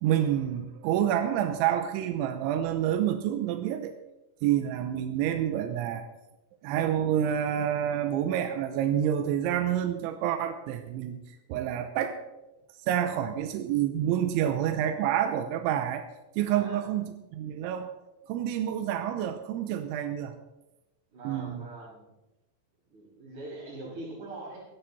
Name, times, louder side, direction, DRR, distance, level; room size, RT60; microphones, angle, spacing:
voice 1, 0.0-3.9 4.4-6.1 6.6-11.2 11.5-12.2 12.9-16.0 16.4-17.9 18.3-20.3 21.2-21.6, right 10 dB, 90° right, 8 dB, 3.1 m, -28 dB
voice 2, 16.5-16.9 21.1-22.2 22.9-24.7, right 2 dB, 40° right, -6 dB, 7.0 m, -43 dB
16.5 x 12.5 x 4.2 m, 0.98 s
omnidirectional pair, 5.5 m